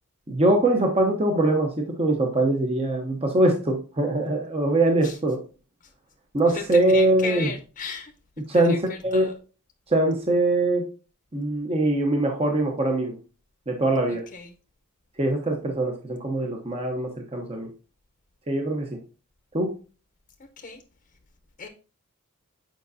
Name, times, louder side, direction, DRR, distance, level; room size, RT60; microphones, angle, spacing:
voice 1, 0.3-5.4 6.3-7.5 8.5-9.3 9.9-10.9 11.3-13.2 13.7-14.2 15.2-17.7 18.5-19.0 19.5-19.7, right 2 dB, 25° right, 2 dB, 0.9 m, -22 dB
voice 2, 6.5-8.1 8.6-9.3 14.1-14.5 20.6-20.8 21.6-21.7, left 4 dB, 40° left, 5 dB, 0.8 m, -35 dB
9.1 x 5.2 x 2.7 m, 0.35 s
head